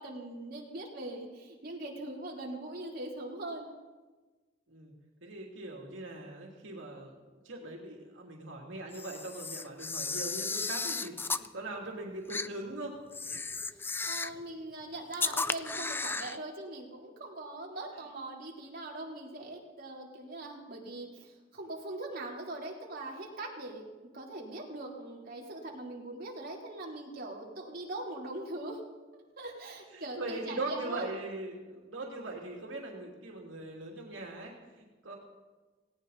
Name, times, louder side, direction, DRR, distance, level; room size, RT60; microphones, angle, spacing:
voice 1, 0.0-3.7 13.7-23.8 24.1-28.8 29.4-31.1, right 2 dB, 50° right, -2 dB, 3.5 m, -41 dB
voice 2, 5.2-7.2 7.4-13.0 29.9-35.2, right 2 dB, 85° right, -1 dB, 2.9 m, -40 dB
Camera, 8.9-11.5 12.3-12.5 13.1-14.4 15.1-16.4, left 4 dB, 10° left, 0.4 m, -34 dB
19.0 x 18.0 x 4.1 m, 1.3 s
head